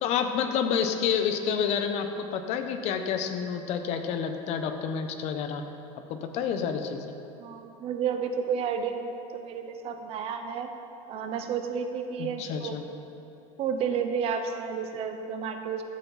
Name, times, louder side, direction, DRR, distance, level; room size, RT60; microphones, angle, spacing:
voice 1, 0.0-5.6 6.1-7.0 12.2-12.8, left 7 dB, 45° left, 7 dB, 0.8 m, -29 dB
voice 2, 7.4-10.7 11.1-12.8 13.6-15.8, right 6 dB, 40° right, 6 dB, 0.8 m, -31 dB
12.5 x 8.2 x 4.1 m, 2.8 s
cardioid pair, 155°, 15 cm